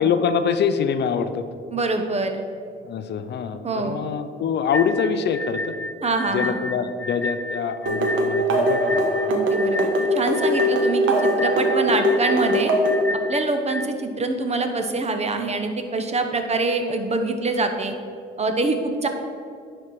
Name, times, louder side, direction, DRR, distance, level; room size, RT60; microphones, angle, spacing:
voice 1, 0.0-1.4 2.8-5.8 6.3-9.0, left 6 dB, 60° left, 10 dB, 0.5 m, -24 dB
voice 2, 1.7-2.4 3.6-4.1 6.0-6.6 9.3-12.7 13.3-17.9 18.4-19.1, right 3 dB, 35° right, 6 dB, 0.9 m, -25 dB
sound 1, 4.7-13.9, left 2 dB, 10° left, 0.4 m, -31 dB
sound 2, 7.9-13.0, equal, 75° right, 1.3 m, -21 dB
10.5 x 4.4 x 4.7 m, 2.3 s
cardioid pair, 90°, 20 cm